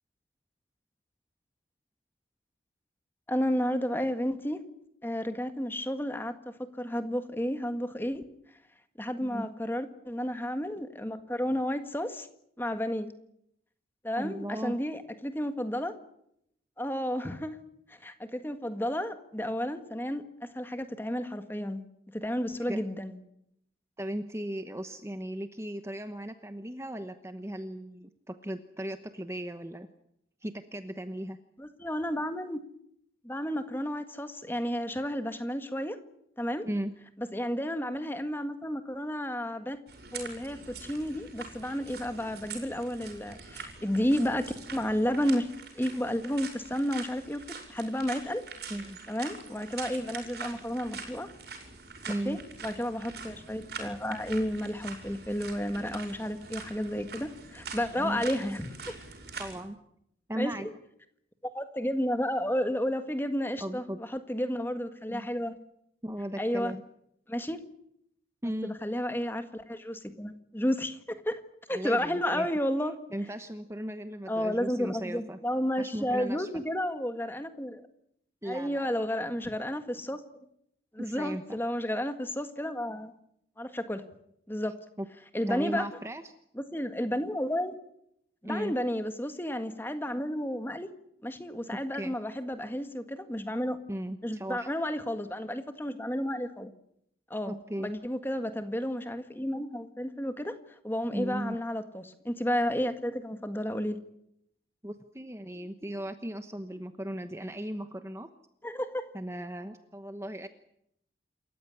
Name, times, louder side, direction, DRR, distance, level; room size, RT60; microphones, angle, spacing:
voice 1, 3.3-4.6 5.0-6.3 6.8-8.2 9.0-12.3 12.6-13.1 14.0-15.9 16.8-17.6 17.9-21.8 22.1-23.2 31.6-32.6 33.2-36.0 36.4-36.7 37.3-39.8 40.1-45.5 45.7-48.4 49.1-51.3 52.2-59.0 60.3-60.7 61.4-65.6 66.4-66.7 67.3-67.6 68.6-71.4 71.7-72.9 74.3-77.8 78.4-80.2 80.9-83.1 83.6-84.0 84.5-84.7 85.3-85.8 86.5-87.8 88.4-90.9 91.2-93.8 94.2-96.7 97.3-100.6 100.8-104.0 108.6-109.2, equal, 10° left, 9 dB, 1.6 m, -32 dB
voice 2, 14.2-14.8 22.7-22.8 24.0-29.9 30.4-31.4 36.6-36.9 48.7-49.0 52.1-52.4 58.0-58.2 59.4-59.8 60.3-60.7 63.6-64.0 65.1-65.3 66.0-66.8 68.4-68.7 71.7-72.5 73.1-75.4 75.8-76.5 78.4-78.9 81.0-81.6 85.0-85.1 85.5-86.3 88.4-88.7 92.0-92.1 93.9-94.7 97.5-97.9 101.1-101.6 104.8-108.3 109.1-110.5, right 1 dB, 15° right, 9 dB, 1.0 m, -37 dB
sound 1, 39.9-59.6, right 4 dB, 60° right, 5.8 m, -44 dB
28.0 x 14.5 x 9.8 m, 0.75 s
head